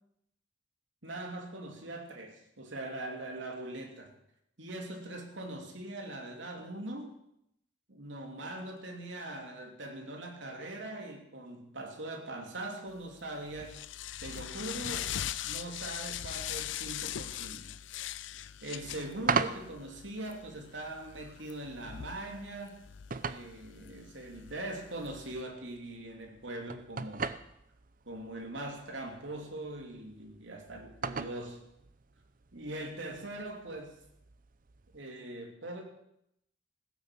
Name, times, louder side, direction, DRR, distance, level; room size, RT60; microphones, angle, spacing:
voice 1, 1.0-4.2 4.6-7.2 7.9-13.8 14.2-15.2 15.4-17.7 18.6-22.8 23.2-27.3 28.0-31.6 32.5-34.0 34.9-35.8, right 1 dB, 90° right, 3 dB, 3.0 m, -41 dB
sound 1, 13.0-25.4, left 11 dB, 90° left, 0.5 m, -41 dB
sound 2, 18.7-35.0, right 5 dB, 45° right, 0.7 m, -41 dB
16.0 x 9.9 x 7.7 m, 0.79 s
head